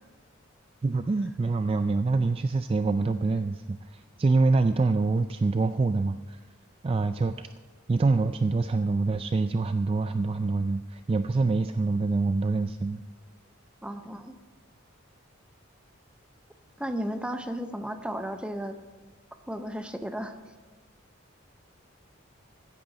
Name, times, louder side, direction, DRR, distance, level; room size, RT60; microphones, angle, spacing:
voice 1, 0.8-6.5 6.8-7.5 7.9-13.0, right 3 dB, 25° right, 10 dB, 0.3 m, -25 dB
voice 2, 13.8-14.3 16.8-18.8 19.5-20.4, equal, 5° right, 7 dB, 0.7 m, -34 dB
15.0 x 10.5 x 4.1 m, 1.4 s
head